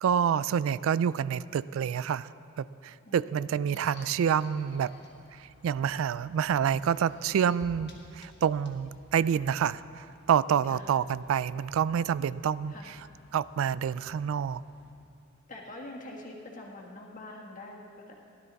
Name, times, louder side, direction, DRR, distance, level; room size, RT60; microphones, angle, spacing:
voice 1, 0.0-2.3 2.6-4.9 5.6-12.7 13.3-14.6, right 8 dB, 85° right, 18 dB, 0.3 m, -28 dB
voice 2, 3.0-3.8 10.6-10.9 12.7-12.9 15.5-18.1, left 2 dB, 40° left, -1 dB, 1.7 m, -45 dB
sound 1, 3.7-14.9, left 1 dB, 55° left, 1.7 m, -56 dB
16.5 x 12.0 x 4.1 m, 2.6 s
head